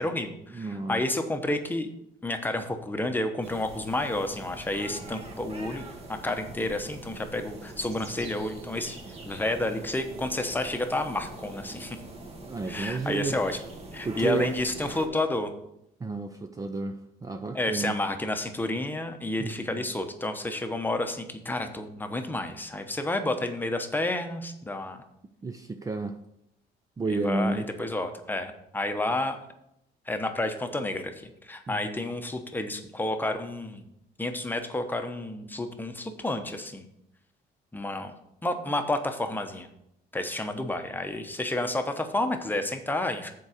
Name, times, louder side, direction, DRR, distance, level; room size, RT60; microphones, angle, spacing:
voice 1, 0.0-1.9 2.2-5.8 6.1-9.0 9.3-12.0 12.7-13.6 13.9-15.5 17.5-25.0 27.1-29.4 30.1-33.9 34.2-36.9 37.7-38.2 38.4-39.7 40.1-43.3, left 2 dB, 10° left, 6 dB, 0.9 m, -30 dB
voice 2, 0.5-1.0 12.5-13.4 14.0-14.5 16.0-18.0 19.4-19.9 25.4-26.2 27.0-27.6 31.7-31.9, right 3 dB, 20° right, 6 dB, 0.5 m, -31 dB
sound 1, 3.4-15.1, right 2 dB, 40° right, 1.5 m, -43 dB
7.2 x 4.6 x 6.5 m, 0.80 s
cardioid pair, 110°, 17 cm